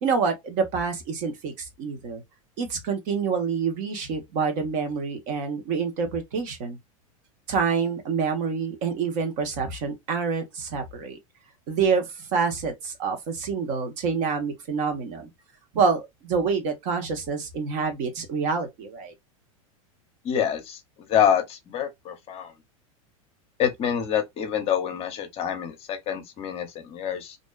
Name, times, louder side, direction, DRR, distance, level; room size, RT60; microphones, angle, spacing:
voice 1, 0.0-2.2 2.6-6.8 7.5-11.2 11.7-15.3 15.7-19.1, right 5 dB, 55° right, 1.0 m, -27 dB
voice 2, 20.2-20.8 21.1-22.5 23.6-27.4, left 9 dB, 35° left, 0.7 m, -26 dB
2.5 x 2.2 x 2.2 m
hypercardioid pair, 120°, 18 cm